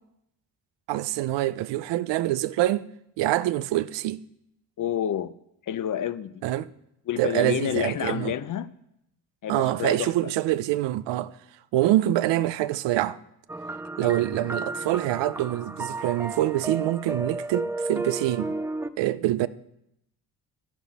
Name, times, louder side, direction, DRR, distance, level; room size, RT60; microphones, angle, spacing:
voice 1, 0.9-2.9 3.2-4.2 6.4-6.7 7.2-8.3 9.5-11.4 11.7-13.2 14.0-18.5 19.0-19.5, right 14 dB, 80° right, 0.6 m, -25 dB
voice 2, 4.8-5.3 5.7-6.4 7.1-8.7 9.4-10.1 14.0-14.2, left 10 dB, 45° left, 0.6 m, -29 dB
sound 1, 13.5-18.9, right 2 dB, 5° right, 0.4 m, -33 dB
11.5 x 10.5 x 4.1 m
supercardioid pair, 70°, 43 cm